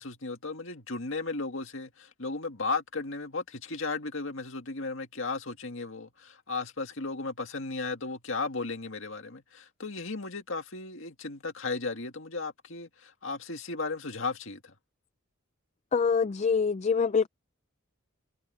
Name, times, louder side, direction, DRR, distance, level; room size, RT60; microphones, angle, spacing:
voice 1, 0.0-14.7, left 3 dB, 65° left, 2.2 m, -35 dB
voice 2, 15.9-17.3, left 5 dB, 35° left, 0.3 m, -25 dB
head